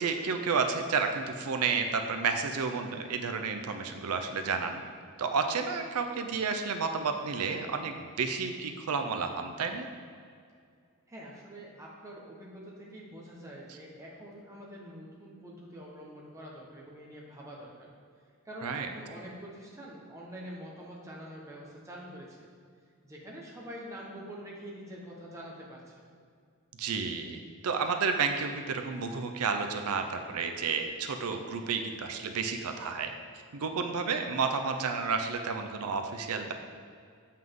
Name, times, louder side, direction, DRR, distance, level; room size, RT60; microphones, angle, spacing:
voice 1, 0.0-4.8 5.2-9.9 18.6-18.9 26.8-33.1 33.5-36.5, right 5 dB, 90° right, 6 dB, 0.5 m, -31 dB
voice 2, 11.1-17.9 18.4-22.4 23.0-26.1, equal, 15° right, -4 dB, 1.1 m, -45 dB
7.7 x 5.6 x 3.7 m, 2.2 s
head